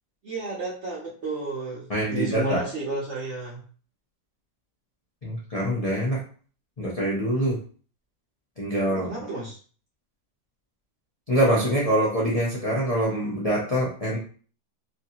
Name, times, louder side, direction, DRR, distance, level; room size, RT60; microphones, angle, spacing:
voice 1, 0.2-3.6 8.9-9.6, right 3 dB, 60° right, -4 dB, 0.7 m, -32 dB
voice 2, 1.9-2.6 5.2-6.2 6.8-7.6 8.6-9.1 11.3-14.2, equal, 55° left, -5 dB, 0.4 m, -24 dB
3.0 x 2.7 x 2.8 m, 0.40 s
omnidirectional pair, 1.9 m